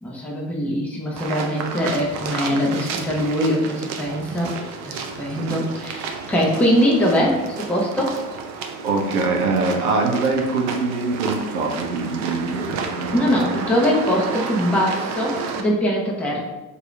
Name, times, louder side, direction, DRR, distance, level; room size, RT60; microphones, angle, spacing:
voice 1, 0.0-4.5 4.8-8.1 13.1-16.4, equal, 5° left, -4 dB, 0.7 m, -22 dB
sound 1, 1.2-15.6, right 5 dB, 40° right, 0.5 m, -31 dB
voice 2, 8.8-13.6, right 3 dB, 80° right, 3 dB, 0.7 m, -23 dB
2.8 x 2.6 x 3.1 m, 1.0 s
hypercardioid pair, 70°, 44 cm